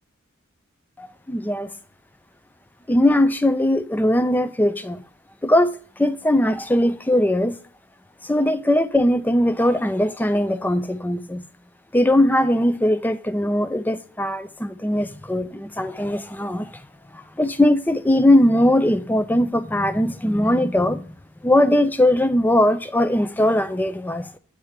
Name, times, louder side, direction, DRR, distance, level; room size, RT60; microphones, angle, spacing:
voice 1, 1.0-1.7 2.9-5.0 5.4-5.7 6.0-7.6 8.2-11.4 11.9-16.8 17.1-21.0 21.4-24.3, left 1 dB, 10° left, 0.4 m, -20 dB
8.8 x 3.4 x 4.8 m
head